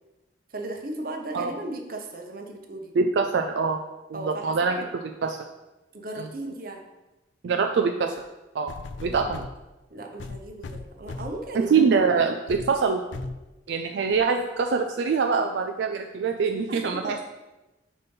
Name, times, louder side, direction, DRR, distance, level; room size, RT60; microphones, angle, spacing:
voice 1, 0.5-2.9 4.1-4.9 5.9-6.8 9.0-9.4 9.9-11.9 16.7-17.2, right 2 dB, 50° right, 3 dB, 0.8 m, -36 dB
voice 2, 2.9-3.8 4.1-4.9 5.2-5.4 7.4-8.1 8.5-8.7 9.0-9.4 11.5-13.0 13.7-17.2, right 5 dB, 75° right, 4 dB, 0.4 m, -24 dB
sound 1, 8.2-8.3 8.7-9.6 10.2-11.5 12.0-12.1 12.5-12.7 13.1-13.4 14.1-14.2, left 3 dB, 85° left, 0.4 m, -37 dB
5.3 x 4.1 x 5.3 m, 1.1 s
head